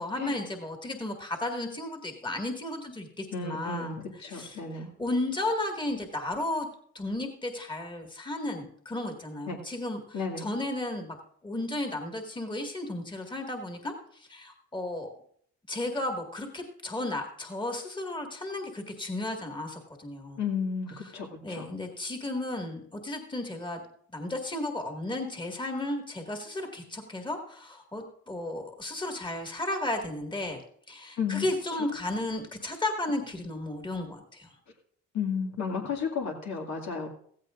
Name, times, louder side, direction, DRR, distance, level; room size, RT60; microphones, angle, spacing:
voice 1, 0.0-4.6 5.0-6.7 6.9-11.2 11.4-15.1 15.7-20.4 21.0-21.1 21.4-23.8 24.1-30.6 30.9-34.5, left 2 dB, 15° left, 3 dB, 1.9 m, -34 dB
voice 2, 3.3-4.9 9.5-9.6 10.1-10.5 20.4-21.7 31.2-31.5 35.1-37.1, left 5 dB, 65° left, 1 dB, 2.2 m, -33 dB
15.0 x 15.0 x 2.5 m, 0.63 s
cardioid pair, 90°, 30 cm